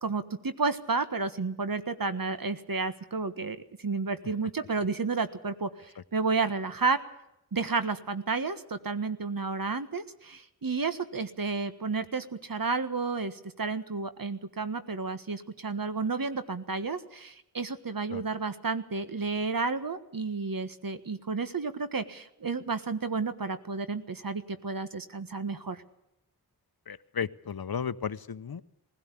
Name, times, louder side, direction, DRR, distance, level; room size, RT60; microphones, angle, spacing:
voice 1, 0.0-7.0 7.5-25.8, right 4 dB, 60° right, 11 dB, 1.5 m, -31 dB
voice 2, 26.9-28.6, left 7 dB, 70° left, 16 dB, 0.8 m, -34 dB
20.0 x 16.5 x 8.4 m, 0.88 s
wide cardioid pair, 55°, 38 cm